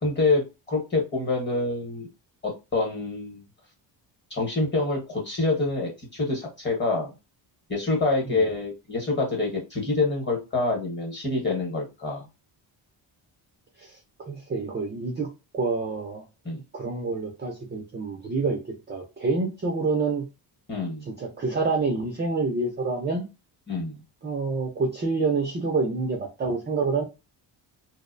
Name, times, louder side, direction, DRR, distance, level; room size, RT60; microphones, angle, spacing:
voice 1, 0.0-2.1 2.4-3.4 4.3-7.1 7.7-12.3 16.4-16.6 20.7-21.1 23.7-24.0, left 3 dB, 25° left, 0 dB, 0.9 m, -26 dB
voice 2, 14.2-15.3 15.5-16.2 16.5-18.6 18.9-20.3 21.1-23.3 24.2-27.0, right 3 dB, 25° right, 0 dB, 0.3 m, -27 dB
2.5 x 2.0 x 2.5 m, 0.26 s
wide cardioid pair, 170°, 44 cm